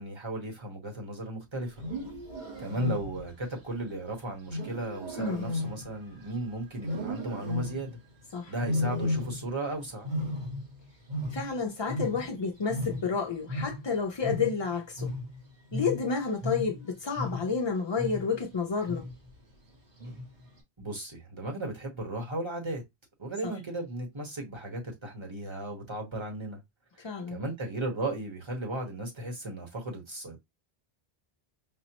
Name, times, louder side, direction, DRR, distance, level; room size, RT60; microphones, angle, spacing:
voice 1, 0.0-1.7 2.6-8.0 8.5-10.1 20.8-22.8 23.2-26.6 27.3-30.4, right 1 dB, 30° right, 1.1 m, -35 dB
Wild animals, 1.7-3.4 4.5-6.4 6.8-8.0 8.6-9.7 9.9-12.4 12.7-17.6 18.0-18.4 18.9-19.3 20.0-20.5, left 2 dB, 50° right, 1.2 m, -34 dB
voice 2, 11.3-15.1 15.7-19.1 27.0-27.4, left 5 dB, 45° left, 0.3 m, -30 dB
5.2 x 2.0 x 2.9 m
omnidirectional pair, 1.1 m